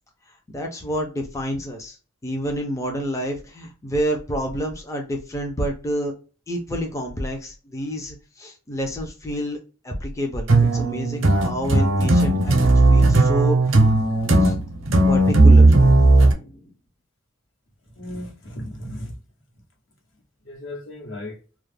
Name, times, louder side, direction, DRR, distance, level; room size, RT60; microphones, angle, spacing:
voice 1, 0.3-2.0 2.2-6.1 6.5-9.6 9.8-12.5 12.9-14.0 14.4-14.5 15.1-16.7, equal, 15° left, 0.4 m, -29 dB
sound 1, 10.5-16.3, right 2 dB, 80° right, 0.6 m, -16 dB
voice 2, 18.0-19.1 20.5-21.4, left 1 dB, 75° left, 1.0 m, -35 dB
2.3 x 2.0 x 3.1 m
head